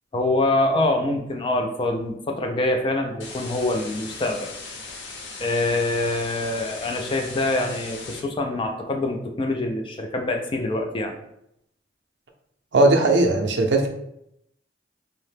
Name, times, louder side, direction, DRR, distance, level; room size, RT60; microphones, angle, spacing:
voice 1, 0.1-4.5 5.4-11.1, left 2 dB, 30° left, 4 dB, 0.3 m, -25 dB
sound 1, 3.2-8.2, left 4 dB, 90° left, 0.6 m, -38 dB
voice 2, 12.7-13.9, right 2 dB, 70° right, 3 dB, 0.5 m, -18 dB
2.8 x 2.0 x 3.2 m, 0.77 s
head